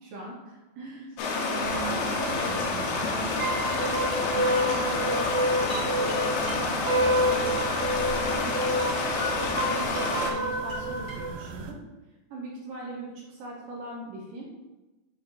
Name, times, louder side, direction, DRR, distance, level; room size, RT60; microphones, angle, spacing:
voice 1, 0.0-3.4 4.1-8.9 9.6-11.8 12.3-14.5, right 2 dB, 70° right, -5 dB, 2.3 m, -40 dB
Stream, 1.2-10.3, left 3 dB, 80° left, 2.4 m, -29 dB
sound 1, 1.6-11.7, right 5 dB, 90° right, 2.1 m, -40 dB
sound 2, 3.4-11.3, equal, 50° right, 1.0 m, -28 dB
9.9 x 4.1 x 2.6 m, 1.1 s
omnidirectional pair, 5.1 m